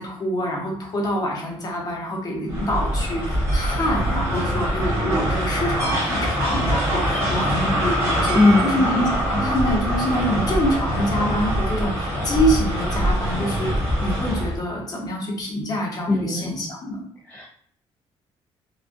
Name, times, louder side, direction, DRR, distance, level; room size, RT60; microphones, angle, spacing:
voice 1, 0.0-17.0, equal, 40° left, -2 dB, 1.0 m, -26 dB
sound 1, 2.5-14.6, equal, 25° right, 1.5 m, -23 dB
voice 2, 8.3-8.8 16.1-16.5 17.3-17.4, left 2 dB, 15° left, -5 dB, 0.5 m, -18 dB
3.5 x 2.5 x 2.6 m, 0.63 s
cardioid pair, 140°, 10 cm